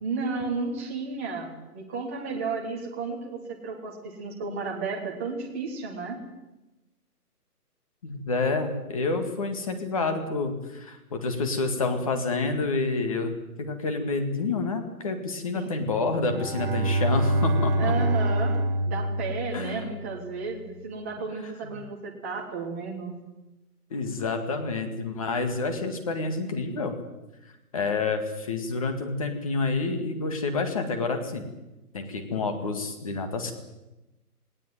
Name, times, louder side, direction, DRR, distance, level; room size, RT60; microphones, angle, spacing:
voice 1, 0.0-6.2 15.5-15.8 17.8-18.6 18.8-23.1, right 4 dB, 10° right, -2 dB, 1.3 m, -33 dB
voice 2, 8.0-18.0 19.5-19.9 23.9-27.0 27.7-31.5 31.9-33.5, left 3 dB, 20° left, 6 dB, 2.0 m, -28 dB
Bowed string instrument, 16.1-20.2, right 1 dB, 35° right, 1.5 m, -26 dB
18.5 x 18.5 x 9.3 m, 1.0 s
hypercardioid pair, 175°, 46 cm